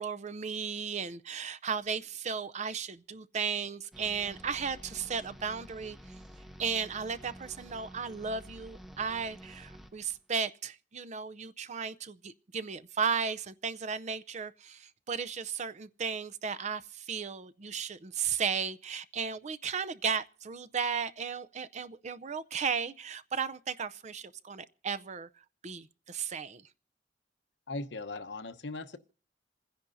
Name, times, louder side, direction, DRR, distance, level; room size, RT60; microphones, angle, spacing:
voice 1, 0.0-6.0 6.6-26.7, right 6 dB, 40° right, 0.5 m, -35 dB
sound 1, 3.9-10.2, equal, ahead, 0.7 m, -50 dB
voice 2, 27.7-29.0, left 2 dB, 85° left, 0.9 m, -39 dB
27.5 x 10.5 x 2.6 m
head